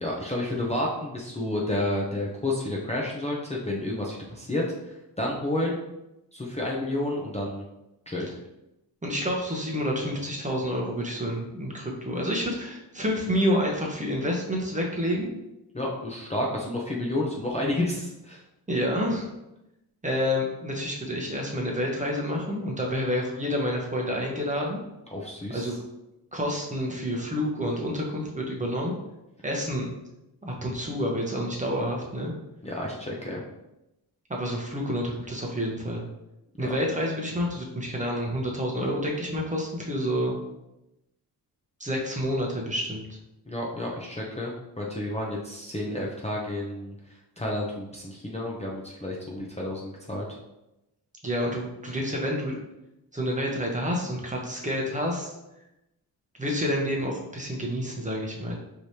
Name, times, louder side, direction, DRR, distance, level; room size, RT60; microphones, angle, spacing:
voice 1, 0.0-5.8 6.3-7.6 8.1-8.3 15.7-18.4 25.1-25.7 32.6-33.4 36.6-36.8 43.5-46.9 47.4-50.3, left 1 dB, 15° left, -4 dB, 0.7 m, -30 dB
voice 2, 9.0-15.3 18.7-19.3 20.0-24.8 25.5-25.7 26.3-28.9 29.4-29.9 30.4-32.3 34.3-36.1 36.6-40.4 41.8-43.2 51.2-52.6 53.1-55.3 56.4-58.6, equal, 20° right, -1 dB, 0.9 m, -28 dB
4.8 x 3.1 x 2.8 m, 0.92 s
cardioid pair, 80°, 41 cm